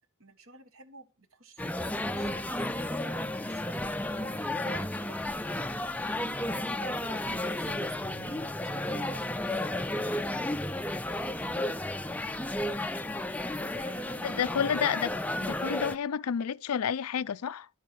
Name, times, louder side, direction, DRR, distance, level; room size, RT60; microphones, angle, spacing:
voice 1, 0.2-5.4 6.7-9.2 13.5-15.0, right 3 dB, 65° right, 1.5 m, -50 dB
sound 1, 1.6-16.0, left 1 dB, 5° left, 0.4 m, -33 dB
voice 2, 14.2-15.1 15.4-17.7, left 7 dB, 85° left, 0.5 m, -30 dB
11.5 x 8.4 x 4.4 m
head